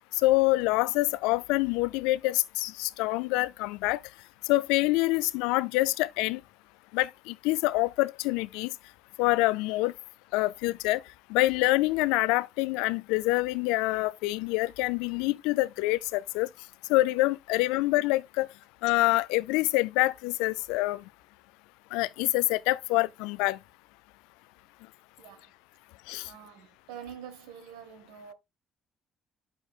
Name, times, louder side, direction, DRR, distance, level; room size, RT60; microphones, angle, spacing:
voice 1, 0.1-4.0 4.4-6.4 6.9-8.7 9.2-9.9 10.3-11.0 11.3-16.5 16.9-18.5 18.8-21.0 21.9-23.6 26.1-26.3, left 20 dB, 85° left, 0.3 m, -26 dB
voice 2, 25.2-25.5 26.2-28.3, right 8 dB, 85° right, 1.4 m, -46 dB
8.2 x 6.5 x 2.4 m
hypercardioid pair, 60°, 0 cm